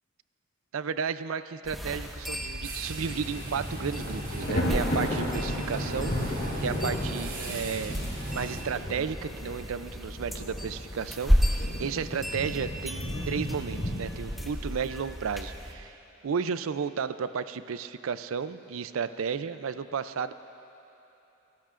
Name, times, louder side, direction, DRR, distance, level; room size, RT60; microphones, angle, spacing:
voice 1, 0.7-7.9 8.3-16.0 16.2-20.3, right 6 dB, 85° right, 12 dB, 0.4 m, -33 dB
sound 1, 1.6-15.7, equal, ahead, 0.9 m, -33 dB
sound 2, 2.6-8.6, right 1 dB, 65° right, 3.2 m, -36 dB
Thunder, 3.0-3.3 3.6-14.4, equal, 50° left, 4.1 m, -35 dB
28.5 x 14.5 x 2.5 m, 3.0 s
head